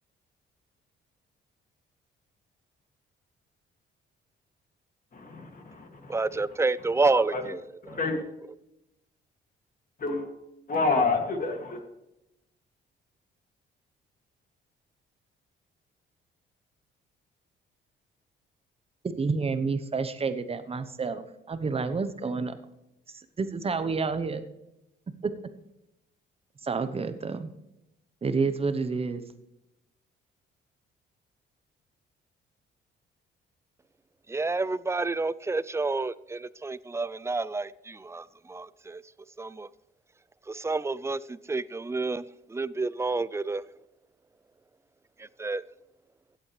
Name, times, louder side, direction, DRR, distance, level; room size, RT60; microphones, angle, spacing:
voice 1, 5.1-6.2 7.1-7.4 7.8-8.2 10.0-10.3 10.7-11.8, left 3 dB, 45° left, 3 dB, 2.3 m, -28 dB
voice 2, 6.1-8.0 34.3-39.0 39.4-39.7 40.5-42.2 42.5-43.6 45.2-45.6, right 3 dB, 15° right, 18 dB, 0.3 m, -29 dB
voice 3, 19.0-22.6 23.1-24.4 25.2-25.3 26.6-27.5 28.2-29.2, right 4 dB, 30° right, 10 dB, 0.9 m, -29 dB
15.5 x 8.4 x 3.3 m, 0.88 s
cardioid pair, 90°, 20 cm